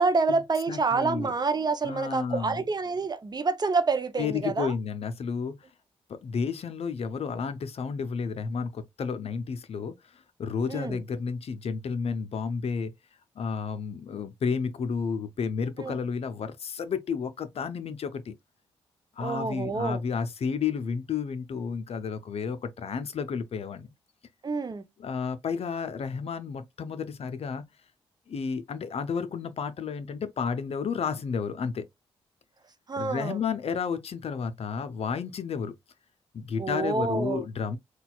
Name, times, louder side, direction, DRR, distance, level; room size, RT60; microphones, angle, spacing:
voice 1, 0.0-4.7 10.7-11.0 15.8-16.0 19.2-20.0 24.4-24.9 32.9-33.4 36.6-37.4, right 4 dB, 35° right, 0.6 m, -27 dB
voice 2, 0.7-1.3 1.8-2.6 4.2-5.6 6.1-12.9 13.4-18.3 19.2-23.9 25.0-27.6 28.3-31.9 33.0-35.7 36.3-37.8, left 6 dB, 55° left, 0.6 m, -31 dB
4.0 x 2.3 x 2.2 m
supercardioid pair, 50°, 12 cm